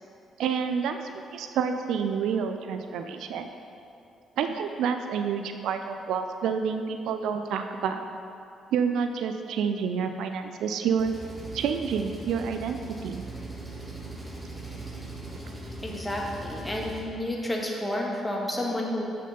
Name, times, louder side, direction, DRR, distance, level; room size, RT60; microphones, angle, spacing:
voice 1, 0.4-1.0 1.3-3.5 4.4-8.0 8.7-11.1 11.5-13.2 15.4-15.5, right 6 dB, 65° right, 7 dB, 0.4 m, -28 dB
Engine, 11.0-17.0, right 1 dB, 15° right, 1.9 m, -40 dB
voice 2, 15.8-19.0, left 1 dB, 15° left, -1 dB, 1.7 m, -30 dB
7.6 x 6.6 x 5.2 m, 2.6 s
figure-of-eight pair, 40°, 0 cm